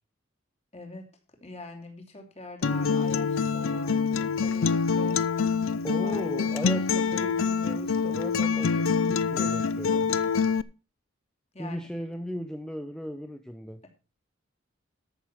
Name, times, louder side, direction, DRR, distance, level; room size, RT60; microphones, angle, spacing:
voice 1, 0.7-1.1 1.4-5.2 6.0-6.5 11.5-11.9, left 2 dB, 30° left, 3 dB, 3.0 m, -44 dB
Acoustic guitar, 2.6-10.6, left 5 dB, 80° left, 0.5 m, -26 dB
voice 2, 5.8-10.1 11.6-13.8, equal, 5° left, 6 dB, 0.7 m, -37 dB
13.5 x 6.7 x 5.5 m, 0.33 s
head